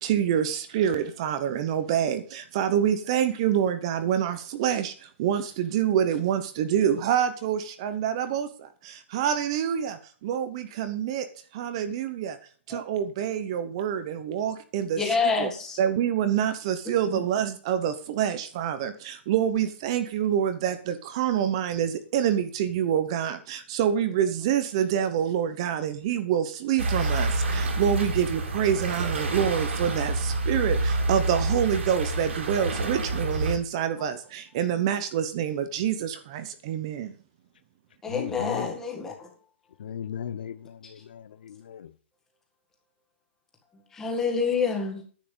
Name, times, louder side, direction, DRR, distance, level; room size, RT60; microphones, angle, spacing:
voice 1, 0.0-11.3 11.5-12.4 12.7-15.5 15.8-37.2, right 9 dB, 25° right, 0.9 m, -27 dB
voice 2, 15.0-15.8 17.1-17.2 38.0-39.3 43.9-45.0, left 5 dB, 5° left, 1.7 m, -27 dB
sound 1, 26.8-33.6, right 2 dB, 80° right, 4.8 m, -28 dB
voice 3, 38.1-38.7 39.8-40.6 41.1-41.9, left 9 dB, 50° left, 0.7 m, -35 dB
10.5 x 8.5 x 5.2 m
hypercardioid pair, 180°, 7 cm